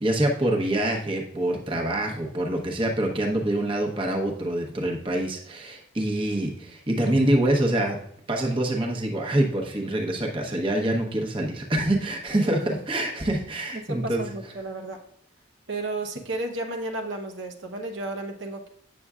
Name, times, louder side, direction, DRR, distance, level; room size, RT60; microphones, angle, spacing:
voice 1, 0.0-8.0 8.3-14.2, right 1 dB, 25° right, 1 dB, 0.9 m, -25 dB
voice 2, 13.9-15.0 15.7-18.7, right 2 dB, 75° right, 3 dB, 0.9 m, -33 dB
8.5 x 6.7 x 2.4 m, 0.69 s
head